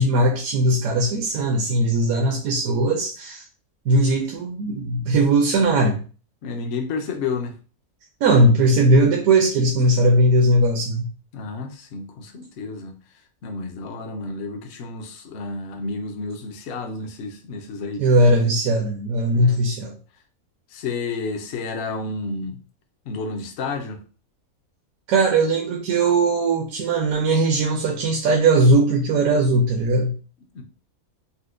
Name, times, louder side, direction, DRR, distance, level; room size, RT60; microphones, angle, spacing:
voice 1, 0.0-3.4 3.9-6.0 8.2-11.1 18.0-20.0 25.1-30.2, right 2 dB, 75° right, 1.0 m, -19 dB
voice 2, 6.4-7.5 11.3-13.0 13.4-18.1 19.3-19.6 20.7-22.6 23.1-24.0 30.5-30.6, left 4 dB, 60° left, 0.7 m, -31 dB
4.2 x 2.1 x 2.4 m
omnidirectional pair, 1.6 m